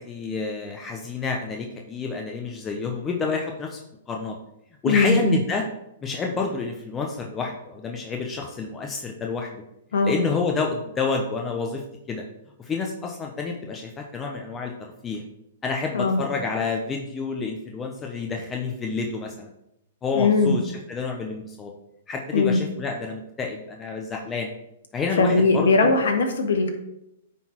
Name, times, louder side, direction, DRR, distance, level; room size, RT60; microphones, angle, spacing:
voice 1, 0.0-3.8 4.1-4.4 4.8-5.6 6.0-9.6 10.0-12.2 12.6-14.7 15.0-15.2 15.6-19.5 20.0-21.7 22.1-24.5 24.9-25.9, left 4 dB, 20° left, 1 dB, 0.9 m, -29 dB
voice 2, 4.8-5.4 9.9-10.2 15.9-16.2 20.1-20.6 22.3-22.6 25.2-26.7, left 3 dB, 70° left, 3 dB, 1.6 m, -20 dB
9.2 x 4.0 x 4.5 m, 0.85 s
hypercardioid pair, 120°, 0 cm